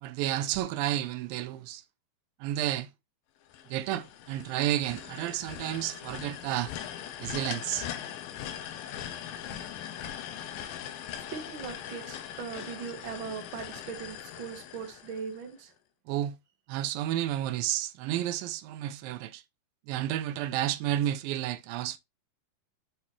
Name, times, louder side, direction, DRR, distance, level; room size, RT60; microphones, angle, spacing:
voice 1, 0.0-1.8 2.4-2.9 3.7-6.7 7.2-7.9 16.1-16.4 16.7-19.4 19.9-22.0, right 12 dB, 85° right, 2.4 m, -31 dB
sound 1, 3.5-15.6, left 10 dB, 85° left, 2.5 m, -41 dB
voice 2, 11.3-15.7, right 6 dB, 70° right, 1.2 m, -39 dB
7.8 x 4.2 x 3.1 m
omnidirectional pair, 4.0 m